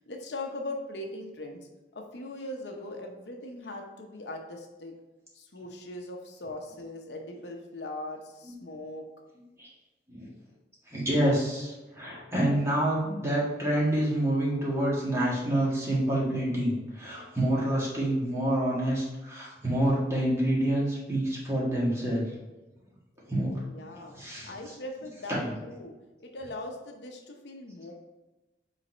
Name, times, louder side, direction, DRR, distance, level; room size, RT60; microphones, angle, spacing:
voice 1, 0.0-4.9 5.3-9.1 23.6-24.1 24.4-25.9 26.2-27.9, left 2 dB, 65° left, 2 dB, 0.8 m, -40 dB
voice 2, 10.9-22.3 23.3-23.6 24.1-24.5 25.3-25.5, right 1 dB, 15° right, -6 dB, 1.7 m, -27 dB
5.2 x 4.1 x 4.3 m, 1.1 s
head